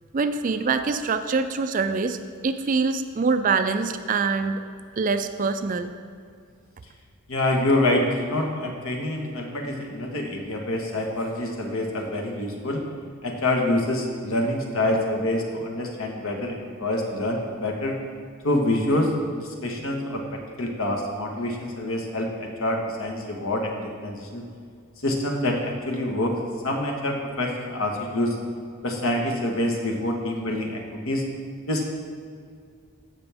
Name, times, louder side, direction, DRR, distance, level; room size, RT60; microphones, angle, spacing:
voice 1, 0.1-2.2 2.4-4.6 5.0-5.9, right 4 dB, 35° right, 9 dB, 0.4 m, -24 dB
voice 2, 7.3-12.8 13.2-18.0 18.4-20.2 20.6-24.4 25.0-26.4 26.6-28.3 28.8-31.2 31.7-31.9, left 1 dB, 70° left, 1 dB, 1.4 m, -26 dB
15.0 x 5.9 x 3.5 m, 2.2 s
head